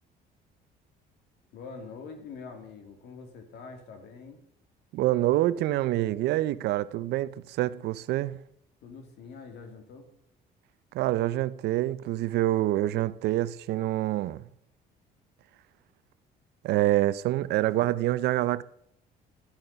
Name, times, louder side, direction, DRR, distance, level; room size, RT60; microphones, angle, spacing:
voice 1, 1.5-4.4 8.8-10.1, left 4 dB, 75° left, 2.3 m, -44 dB
voice 2, 4.9-8.4 10.9-14.5 16.6-18.6, right 15 dB, 75° right, 0.5 m, -26 dB
13.0 x 6.6 x 5.7 m
cardioid pair, 110°, 17 cm